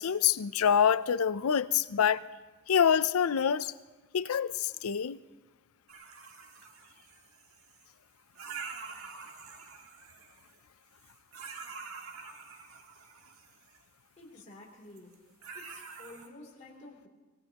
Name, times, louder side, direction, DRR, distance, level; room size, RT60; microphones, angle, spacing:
voice 1, 0.0-2.2 2.7-3.7 4.1-5.2, left 8 dB, 85° left, 0.5 m, -26 dB
sound 1, 5.9-7.9 8.4-10.6 11.0-13.8 15.0-15.1 15.4-16.3, right 5 dB, 75° right, 1.6 m, -46 dB
voice 2, 14.2-15.1 15.5-17.1, left 2 dB, 35° left, 3.0 m, -51 dB
24.0 x 18.0 x 2.9 m
head